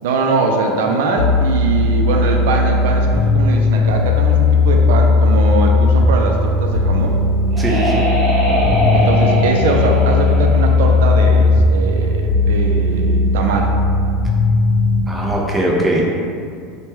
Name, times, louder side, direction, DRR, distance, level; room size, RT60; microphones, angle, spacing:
voice 1, 0.0-7.2 8.9-13.7, right 3 dB, 85° right, 2 dB, 0.3 m, -21 dB
sound 1, 1.2-15.0, left 3 dB, 60° left, 0.4 m, -16 dB
sound 2, 7.0-11.6, left 2 dB, 55° right, 0.9 m, -21 dB
voice 2, 7.6-8.0 15.1-16.0, right 1 dB, 10° right, -3 dB, 0.4 m, -19 dB
3.0 x 2.1 x 3.2 m, 2.4 s
supercardioid pair, 135°, 0 cm